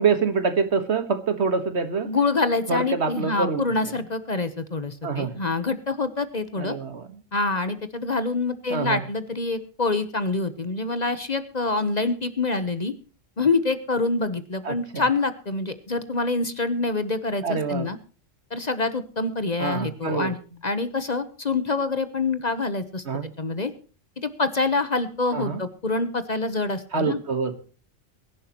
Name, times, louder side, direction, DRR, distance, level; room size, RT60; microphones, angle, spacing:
voice 1, 0.0-2.1 2.7-3.6 5.0-5.3 6.6-7.1 8.7-9.0 14.7-15.0 17.4-17.9 19.6-20.3 23.1-23.3 25.3-25.6 26.9-27.6, right 5 dB, 65° right, 10 dB, 1.7 m, -25 dB
voice 2, 2.1-6.8 7.3-12.9 13.4-18.0 18.5-23.0 23.4-23.7 24.2-27.2, left 3 dB, 35° left, 12 dB, 1.1 m, -26 dB
22.5 x 11.0 x 3.0 m, 0.37 s
omnidirectional pair, 1.3 m